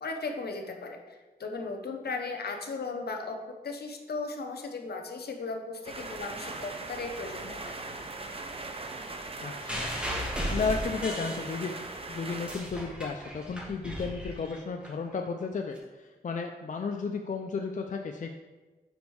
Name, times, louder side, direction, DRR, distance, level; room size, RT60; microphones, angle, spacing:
voice 1, 0.0-3.4 3.6-7.8, left 3 dB, 70° left, 4 dB, 0.8 m, -36 dB
sound 1, 5.8-12.6, right 2 dB, 35° right, 0.7 m, -39 dB
voice 2, 9.4-9.9 10.5-11.8 12.1-18.3, left 4 dB, 50° left, 3 dB, 0.5 m, -33 dB
sound 2, 9.7-11.9 12.3-14.9 15.8-15.9, equal, 5° right, 1.4 m, -35 dB
5.2 x 5.2 x 4.7 m, 1.2 s
wide cardioid pair, 90°, 17 cm